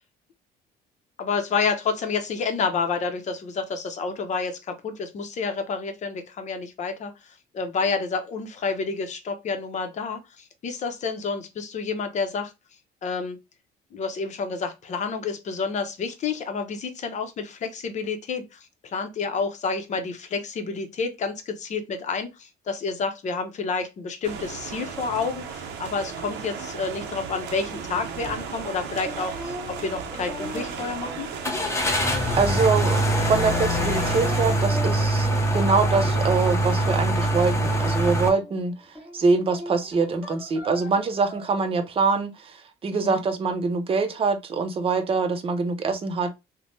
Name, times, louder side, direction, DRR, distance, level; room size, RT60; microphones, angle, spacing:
voice 1, 1.2-12.5 13.0-13.4 13.9-31.3 42.9-43.2, left 5 dB, 45° left, 0.7 m, -29 dB
sound 1, 24.2-34.5, right 6 dB, 80° right, 0.5 m, -36 dB
sound 2, 28.3-28.4 28.8-28.9 31.4-38.3, right 1 dB, 15° left, 0.7 m, -23 dB
sound 3, 28.5-38.7 38.9-41.7, equal, 10° right, 1.5 m, -41 dB
voice 2, 32.4-38.7 39.1-46.3, right 4 dB, 35° right, 0.6 m, -24 dB
3.2 x 2.1 x 2.6 m
cardioid pair, 110°, 17 cm